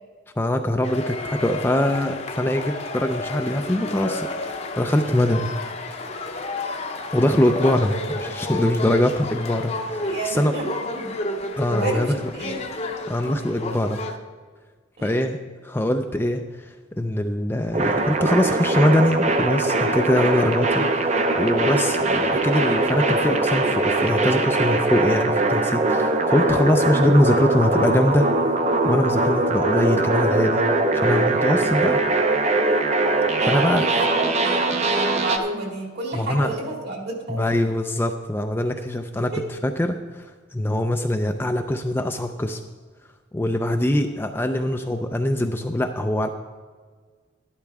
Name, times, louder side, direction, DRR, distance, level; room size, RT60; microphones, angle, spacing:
voice 1, 0.4-5.5 5.9-6.0 7.1-10.5 11.6-12.2 13.1-14.0 15.0-15.4 15.6-28.3 28.8-30.6 30.9-32.0 33.4-33.9 36.1-36.5 37.3-39.3 39.6-40.3 40.5-42.6 43.3-46.3, left 1 dB, 10° left, 6 dB, 0.4 m, -23 dB
sound 1, 0.8-14.2, left 2 dB, 30° left, 0.7 m, -31 dB
voice 2, 10.0-11.2 11.7-12.6 13.2-13.4 15.0-15.3 33.4-37.6 39.3-39.5, right 2 dB, 55° right, 0 dB, 2.2 m, -31 dB
sound 2, 17.7-35.4, right 2 dB, 35° right, 0.7 m, -21 dB
12.0 x 11.5 x 3.5 m, 1.5 s
head